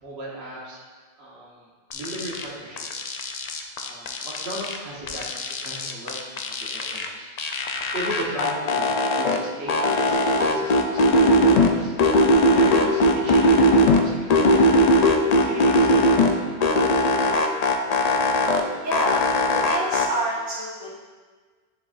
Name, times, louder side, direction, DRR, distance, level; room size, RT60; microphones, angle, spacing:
voice 1, 0.0-0.8 1.2-1.7 1.9-3.0 3.8-7.3 7.9-14.9 15.1-16.5, right 1 dB, 85° right, -6 dB, 1.4 m, -36 dB
sound 1, 1.9-2.4 2.8-4.8 5.1-7.1 7.4-9.4 9.7-11.7 12.0-14.0 14.3-16.3 16.6-18.6 18.9-20.1, left 1 dB, 55° left, 0.5 m, -19 dB
voice 2, 18.8-19.2 19.5-20.9, right 1 dB, 15° right, -8 dB, 1.0 m, -28 dB
9.3 x 4.0 x 2.5 m, 1.5 s
omnidirectional pair, 1.1 m